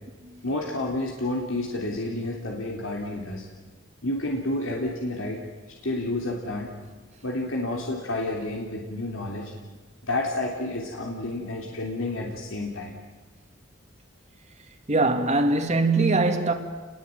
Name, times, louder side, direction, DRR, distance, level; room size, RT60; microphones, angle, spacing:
voice 1, 0.4-3.4 4.0-5.4 5.8-6.7 7.2-9.5 10.0-12.9, left 2 dB, 90° left, 3.5 m, -30 dB
voice 2, 14.9-16.5, right 3 dB, 35° right, 2.2 m, -22 dB
29.0 x 21.0 x 9.3 m
head